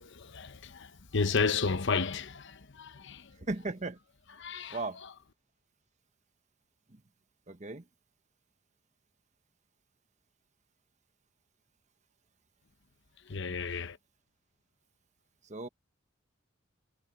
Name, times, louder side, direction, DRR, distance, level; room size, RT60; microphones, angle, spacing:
voice 1, 0.0-3.4 4.4-4.8 13.3-14.0, left 4 dB, 60° left, 0.9 m, -32 dB
voice 2, 3.5-4.0 4.7-5.0 6.9-7.0 7.5-7.8 15.4-15.7, right 2 dB, 35° right, 1.2 m, -36 dB
head